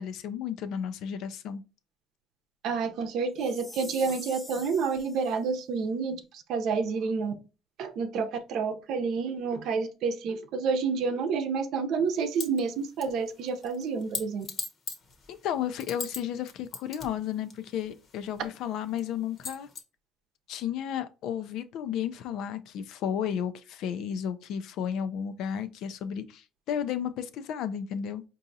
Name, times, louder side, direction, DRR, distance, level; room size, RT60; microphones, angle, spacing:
voice 1, 0.0-1.6 15.3-19.7 20.5-28.2, left 9 dB, 70° left, 0.4 m, -33 dB
voice 2, 2.6-7.3 7.8-14.5, right 5 dB, 65° right, 0.7 m, -29 dB
Chime, 3.4-5.4, left 1 dB, 5° left, 0.6 m, -45 dB
sound 1, 12.4-12.6 13.0-16.2 16.5-18.4 19.0-19.1 19.4-19.8, left 5 dB, 45° left, 0.9 m, -39 dB
4.7 x 2.6 x 2.6 m
cardioid pair, 120°, 0 cm